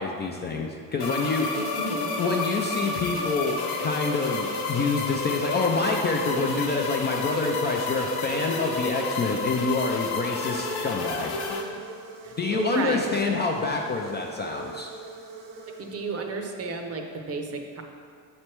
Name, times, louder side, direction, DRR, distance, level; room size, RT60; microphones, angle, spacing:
voice 1, 0.0-1.5 2.2-11.3 12.4-14.9, left 3 dB, 25° left, 0 dB, 0.4 m, -27 dB
sound 1, 1.0-11.6, left 3 dB, 65° left, 0.9 m, -30 dB
sound 2, 1.3-16.5, right 3 dB, 75° right, 0.8 m, -43 dB
voice 2, 1.5-2.1 12.2-13.2 15.8-17.8, right 3 dB, 35° right, 3 dB, 0.7 m, -32 dB
6.9 x 3.3 x 4.4 m, 2.1 s
cardioid pair, 105°, 42 cm